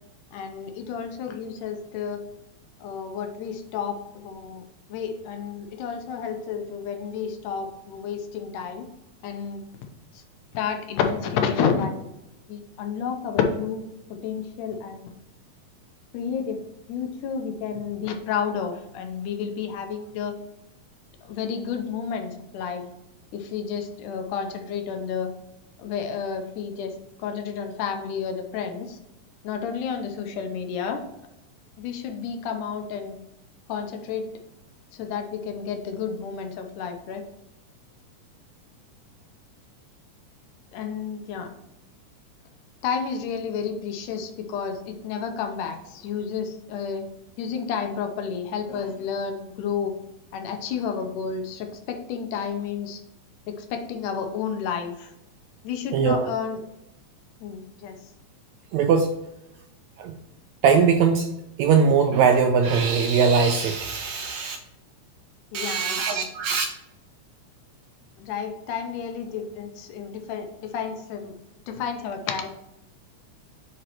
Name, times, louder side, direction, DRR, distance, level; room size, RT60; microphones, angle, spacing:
voice 1, 0.3-2.2 2.8-4.6 4.9-8.9 9.2-9.6 10.1-10.2 10.5-12.0 12.5-13.8 14.1-15.1 16.1-16.6 16.9-20.4 21.2-22.8 23.3-25.3 25.8-26.9 27.2-29.0 29.4-31.0 31.8-33.1 33.7-34.3 34.9-37.2 40.7-41.5 42.8-47.0 47.4-49.9 50.3-53.0 53.5-55.1 55.6-56.6 57.4-57.9 65.5-66.3 68.2-71.3 71.7-72.5, left 6 dB, 85° left, 5 dB, 2.3 m, -30 dB
voice 2, 55.9-56.3 58.7-59.1 60.0-60.1 60.6-61.3 61.6-64.6 65.5-66.6, right 6 dB, 80° right, 5 dB, 1.6 m, -20 dB
8.8 x 4.2 x 3.0 m, 0.90 s
omnidirectional pair, 3.6 m